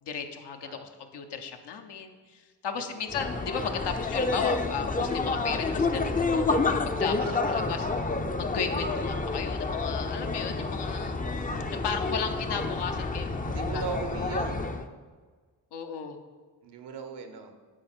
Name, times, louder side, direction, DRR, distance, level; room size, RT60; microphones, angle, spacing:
voice 1, 0.0-11.2 11.8-13.8 15.7-16.2, left 6 dB, 70° left, 5 dB, 0.9 m, -35 dB
voice 2, 2.7-3.2 7.2-7.6 13.4-14.7 16.6-17.5, right 5 dB, 70° right, 7 dB, 1.0 m, -38 dB
sound 1, 3.1-14.9, left 3 dB, 20° left, 0.5 m, -29 dB
9.2 x 4.0 x 4.4 m, 1.5 s
supercardioid pair, 45°, 43 cm